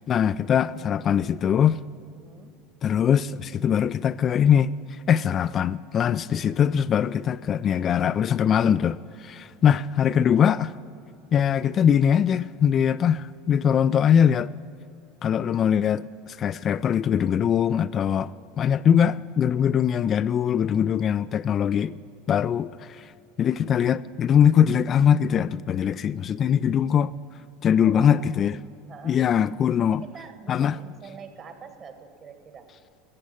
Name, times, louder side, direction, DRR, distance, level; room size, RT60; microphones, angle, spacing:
voice 1, 0.0-1.8 2.8-4.7 5.1-10.7 11.3-14.5 15.2-18.3 18.6-22.0 22.3-23.1 23.4-27.1 27.6-28.6 29.1-30.0 30.5-30.8, left 8 dB, 40° left, 0.3 m, -22 dB
voice 2, 2.1-2.6 27.8-28.2 28.9-29.2 29.8-32.7, right 6 dB, 40° right, 2.0 m, -44 dB
14.5 x 8.4 x 9.9 m
hypercardioid pair, 80°, 0 cm